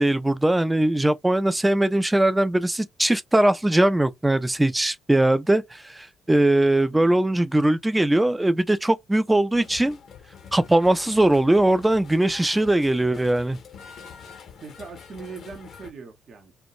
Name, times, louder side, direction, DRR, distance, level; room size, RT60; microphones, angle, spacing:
voice 1, 0.0-10.0 10.5-13.6, right 1 dB, 15° right, 0.4 m, -20 dB
sound 1, 9.5-15.9, left 6 dB, 60° left, 0.7 m, -45 dB
voice 2, 14.6-16.5, right 5 dB, 55° right, 0.8 m, -41 dB
2.3 x 2.1 x 2.6 m
hypercardioid pair, 50°, 0 cm